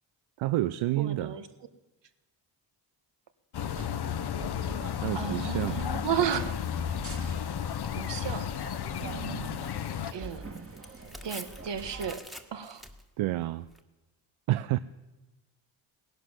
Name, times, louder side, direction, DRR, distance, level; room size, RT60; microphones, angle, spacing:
voice 1, 0.4-1.4 5.0-5.8 9.0-9.6 13.2-13.7 14.5-14.8, right 16 dB, 80° right, 15 dB, 0.6 m, -30 dB
voice 2, 1.0-1.5 5.1-6.6 8.0-8.5 10.1-10.5 11.2-12.2 12.5-12.8, right 8 dB, 60° right, 11 dB, 1.6 m, -33 dB
sound 1, 3.5-10.1, left 9 dB, 55° left, 0.9 m, -33 dB
sound 2, 3.6-12.2, right 2 dB, 30° right, 2.4 m, -44 dB
Tearing, 5.6-13.8, equal, ahead, 1.7 m, -51 dB
18.0 x 11.0 x 7.4 m, 1.1 s
cardioid pair, 65°, 48 cm